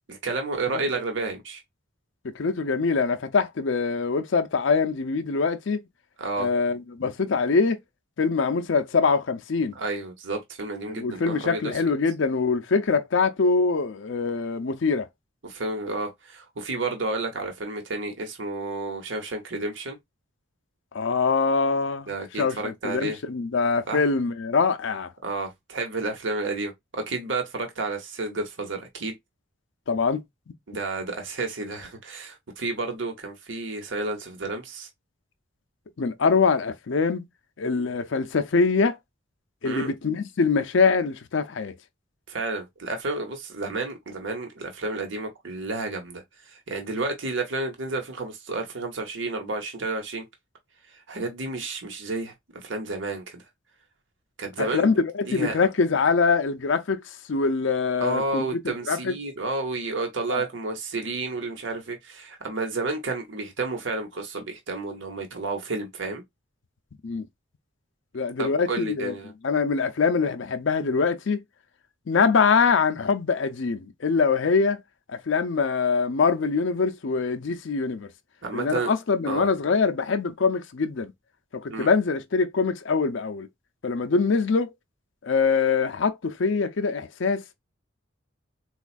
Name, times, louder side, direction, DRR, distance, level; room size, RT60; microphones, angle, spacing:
voice 1, 0.1-1.6 6.2-6.5 9.7-11.7 15.4-20.0 22.1-23.2 23.9-24.0 25.2-29.1 30.7-34.9 39.6-39.9 42.3-50.2 50.9-52.3 52.6-53.4 54.4-55.0 55.3-55.6 58.0-66.2 68.4-69.3 78.4-78.9 79.3-79.5 81.7-81.9, right 3 dB, 65° right, 1.0 m, -31 dB
voice 2, 2.2-5.8 6.4-7.8 8.2-9.7 11.0-15.1 20.9-22.1 22.4-25.1 29.9-30.2 36.0-37.3 37.6-39.0 39.6-41.7 54.6-57.0 57.3-58.6 58.9-59.2 60.3-60.4 67.0-67.3 68.1-69.1 69.4-71.4 72.1-74.8 75.1-78.1 78.5-81.1 81.5-83.5 83.8-84.7 85.2-87.4, left 4 dB, 65° left, 0.5 m, -23 dB
4.2 x 2.4 x 2.4 m
head